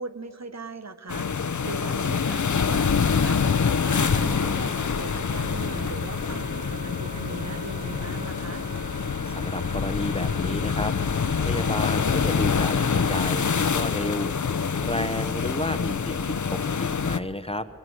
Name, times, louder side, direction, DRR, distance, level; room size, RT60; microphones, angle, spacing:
voice 1, 0.0-8.6, right 3 dB, 50° right, 11 dB, 1.0 m, -39 dB
sound 1, 1.1-17.2, left 6 dB, 55° left, 0.8 m, -26 dB
Wind instrument woodwind instrument, 3.4-13.7, right 2 dB, 30° right, 1.6 m, -42 dB
voice 2, 9.3-10.9 11.4-17.7, left 1 dB, 15° left, 11 dB, 0.9 m, -32 dB
25.0 x 23.0 x 7.9 m, 2.7 s
wide cardioid pair, 85°, 34 cm